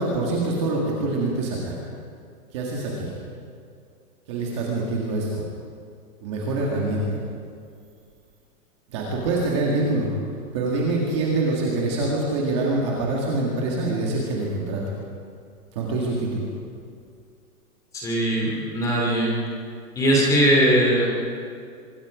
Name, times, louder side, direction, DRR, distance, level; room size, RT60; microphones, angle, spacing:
voice 1, 0.0-1.7 2.5-3.1 4.3-5.4 6.2-7.2 8.9-10.1 10.5-14.9 15.8-16.4, right 2 dB, 20° right, -3 dB, 1.9 m, -25 dB
voice 2, 17.9-19.3 19.9-21.1, right 1 dB, 5° left, -3 dB, 2.6 m, -20 dB
24.5 x 23.0 x 5.0 m, 2.3 s
hypercardioid pair, 180°, 47 cm